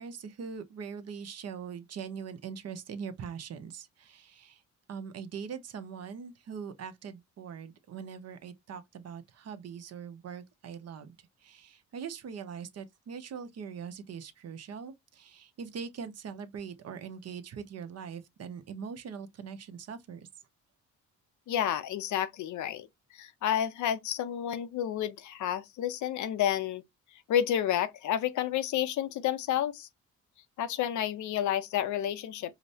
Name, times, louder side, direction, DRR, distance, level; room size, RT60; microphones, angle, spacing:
voice 1, 0.0-4.6 4.9-20.3, right 6 dB, 55° right, 0.8 m, -42 dB
voice 2, 21.5-22.9 23.1-26.8 27.3-29.9 30.6-32.6, left 10 dB, 75° left, 0.6 m, -30 dB
4.9 x 2.1 x 2.6 m
cardioid pair, 90°, 30 cm